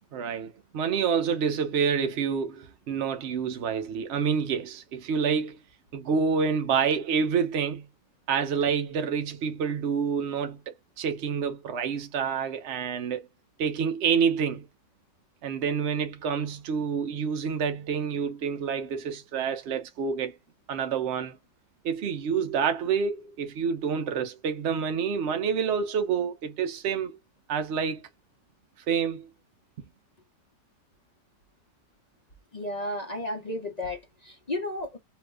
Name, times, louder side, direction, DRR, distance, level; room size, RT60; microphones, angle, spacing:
voice 1, 0.1-5.6 5.9-7.8 8.3-13.2 13.6-14.7 15.4-20.3 20.7-21.3 21.8-27.2 27.5-28.1 28.9-29.3, right 6 dB, 65° right, 0.7 m, -28 dB
voice 2, 32.5-35.0, left 1 dB, 40° left, 0.5 m, -33 dB
2.9 x 2.4 x 3.2 m
omnidirectional pair, 1.8 m